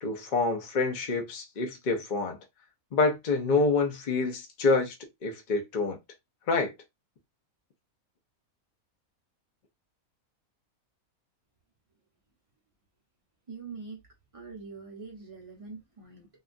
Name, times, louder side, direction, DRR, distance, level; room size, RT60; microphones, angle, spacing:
voice 1, 0.0-2.4 2.9-4.9 5.2-6.0 6.5-6.7, left 3 dB, 45° left, 0.6 m, -27 dB
voice 2, 13.5-14.0 14.3-16.3, right 4 dB, 35° right, 0.6 m, -43 dB
2.9 x 2.3 x 2.5 m
omnidirectional pair, 1.5 m